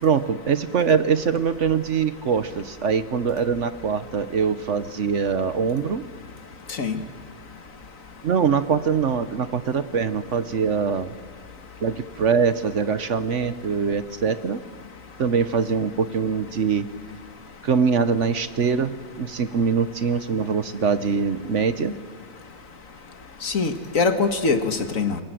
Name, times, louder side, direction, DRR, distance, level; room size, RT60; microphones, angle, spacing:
voice 1, 0.0-6.0 8.2-11.1 11.8-14.6 15.2-16.9 17.6-18.9 19.2-21.9, right 6 dB, 55° right, 12 dB, 1.2 m, -23 dB
voice 2, 23.4-25.2, left 4 dB, 60° left, 7 dB, 2.0 m, -23 dB
27.0 x 23.0 x 7.7 m, 1.6 s
omnidirectional pair, 1.6 m